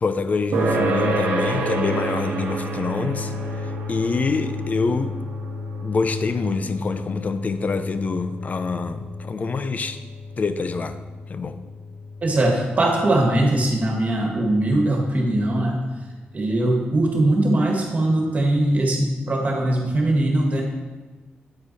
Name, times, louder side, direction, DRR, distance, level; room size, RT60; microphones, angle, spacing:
voice 1, 0.0-3.3 3.6-5.1 5.8-10.0 10.4-11.0 11.3-11.6, left 4 dB, 45° left, 11 dB, 0.5 m, -25 dB
sound 1, 0.5-15.4, right 1 dB, 90° right, 1.2 m, -30 dB
voice 2, 12.2-15.9 16.3-20.6, right 1 dB, 40° right, 0 dB, 1.7 m, -21 dB
8.8 x 4.6 x 4.1 m, 1.3 s
cardioid pair, 75°, 4 cm